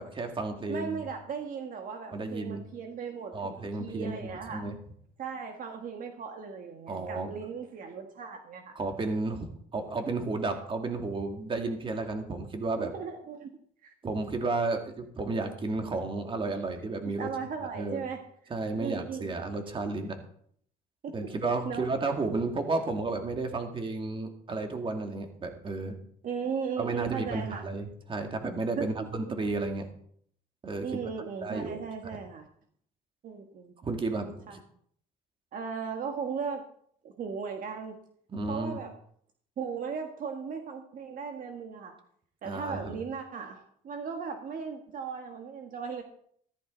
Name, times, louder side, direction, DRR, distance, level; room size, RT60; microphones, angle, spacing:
voice 1, 0.0-1.0 2.1-2.6 3.3-4.8 6.9-7.3 8.7-12.9 14.0-17.3 17.8-18.0 18.5-20.2 21.1-26.0 26.8-29.9 30.6-31.0 31.4-31.8 32.1-32.2 33.8-34.6 38.3-38.8 42.4-43.0, right 3 dB, 30° right, 4 dB, 2.4 m, -32 dB
voice 2, 0.7-4.7 5.2-8.7 12.8-13.5 13.8-13.9 17.0-18.2 18.8-19.3 21.0-21.3 21.6-21.9 26.2-27.6 28.8-28.9 29.3-29.4 30.8-32.5 33.2-33.7 34.5-34.6 35.5-36.6 37.0-38.0 38.5-38.9 39.6-41.9 42.4-46.0, right 6 dB, 55° right, 4 dB, 1.6 m, -37 dB
14.5 x 14.0 x 4.0 m, 0.63 s
cardioid pair, 110°, 17 cm